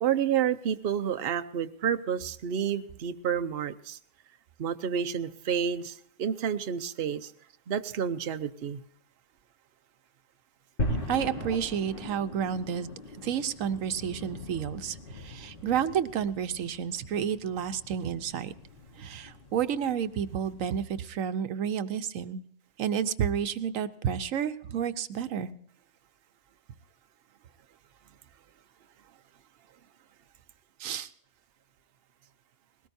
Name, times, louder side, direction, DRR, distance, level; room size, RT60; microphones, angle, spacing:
voice 1, 0.0-4.0 4.6-7.3 7.7-8.8, right 8 dB, 55° right, 0.9 m, -30 dB
sound 1, 10.8-21.1, left 1 dB, 40° left, 2.8 m, -40 dB
voice 2, 11.1-12.9 13.2-18.5 19.0-22.4 22.8-25.5 30.8-31.1, right 8 dB, 80° right, 1.1 m, -30 dB
20.5 x 18.0 x 2.7 m
omnidirectional pair, 1.3 m